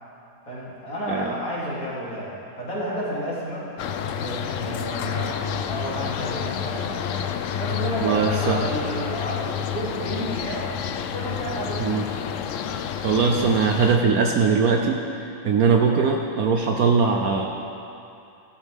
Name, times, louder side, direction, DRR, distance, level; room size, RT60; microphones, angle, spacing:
voice 1, 0.5-3.7 4.1-7.3 7.6-10.7 11.1-11.9, equal, 50° left, -9 dB, 3.7 m, -31 dB
sound 1, 3.8-14.0, left 8 dB, 85° left, 0.6 m, -29 dB
voice 2, 8.0-8.6 11.8-12.0 13.0-15.0 15.4-17.5, right 5 dB, 65° right, 2 dB, 1.1 m, -20 dB
15.5 x 12.5 x 3.6 m, 2.6 s
omnidirectional pair, 2.0 m